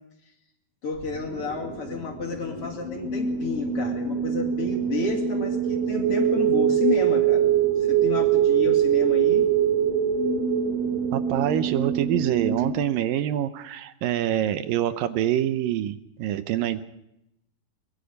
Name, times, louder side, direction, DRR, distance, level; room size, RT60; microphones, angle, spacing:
voice 1, 0.8-7.5 7.8-9.5, left 4 dB, 45° left, 3 dB, 2.7 m, -31 dB
sound 1, 1.0-12.7, right 8 dB, 50° right, 3.2 m, -24 dB
voice 2, 11.1-16.8, right 11 dB, 75° right, 11 dB, 2.4 m, -25 dB
23.5 x 22.0 x 5.3 m, 0.83 s
omnidirectional pair, 4.3 m